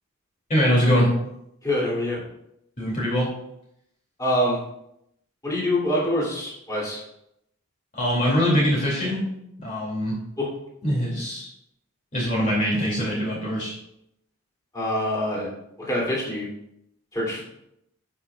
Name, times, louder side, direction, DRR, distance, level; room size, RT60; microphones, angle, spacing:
voice 1, 0.5-1.1 2.8-3.3 7.9-9.2 9.6-10.2 10.8-11.5 12.1-13.8, equal, 35° left, -4 dB, 2.4 m, -23 dB
voice 2, 1.6-2.2 4.2-4.6 5.4-7.0 10.4-10.5 14.7-15.5 15.8-16.5 17.1-17.4, left 1 dB, 15° left, -6 dB, 2.7 m, -25 dB
16.5 x 5.8 x 2.4 m, 0.79 s
head